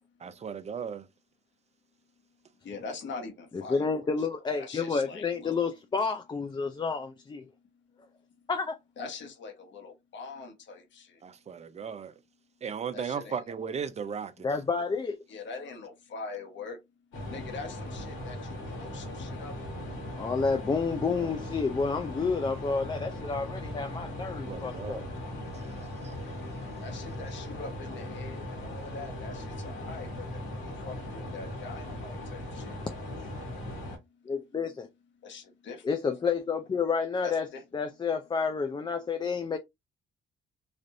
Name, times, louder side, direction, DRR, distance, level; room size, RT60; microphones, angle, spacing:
voice 1, 0.2-1.1 11.2-12.1 12.6-14.3 21.1-21.4 24.5-25.1 25.5-25.7 26.0-26.1, right 6 dB, 35° right, 0.5 m, -36 dB
voice 2, 2.6-4.3 4.5-5.7 7.5-7.6 7.9-8.5 9.0-11.2 12.9-13.4 15.3-16.8 17.3-19.8 26.8-33.0 33.4-34.3 35.2-36.2 37.2-37.6, left 4 dB, 70° left, 1.1 m, -44 dB
voice 3, 3.5-7.4 8.5-8.7 14.4-15.2 20.2-25.0 34.3-34.9 35.8-37.5 37.7-39.6, left 5 dB, 20° left, 0.4 m, -30 dB
sound 1, 17.1-34.0, left 1 dB, 90° left, 1.5 m, -39 dB
3.2 x 2.5 x 2.6 m
cardioid pair, 90°, 20 cm